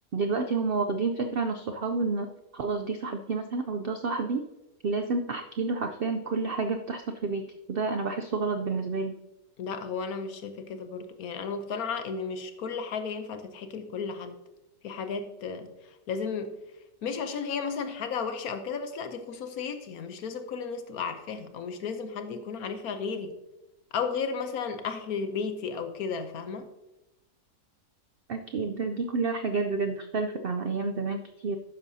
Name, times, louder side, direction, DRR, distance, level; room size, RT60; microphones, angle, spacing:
voice 1, 0.1-2.3 2.5-4.4 4.8-9.2 28.3-31.6, right 4 dB, 65° right, 6 dB, 0.6 m, -29 dB
voice 2, 9.6-14.4 14.8-16.6 17.0-23.3 23.9-26.7, left 5 dB, 75° left, 8 dB, 1.2 m, -34 dB
12.0 x 9.6 x 2.7 m, 0.96 s
omnidirectional pair, 1.6 m